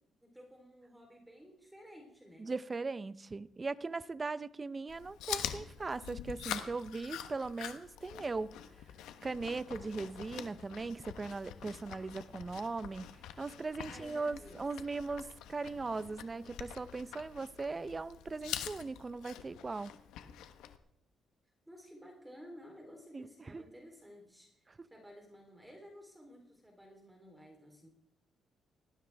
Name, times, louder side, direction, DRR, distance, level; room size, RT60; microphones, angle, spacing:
voice 1, 0.2-2.5 13.9-14.6 21.7-27.9, equal, 5° right, 3.6 m, -54 dB
voice 2, 2.4-8.5 9.2-13.1 13.4-19.9 23.1-23.6, right 3 dB, 30° right, 0.7 m, -39 dB
Chewing mastication, 4.9-20.8, left 10 dB, 90° left, 1.1 m, -45 dB
19.0 x 15.5 x 3.5 m
cardioid pair, 90°, 0 cm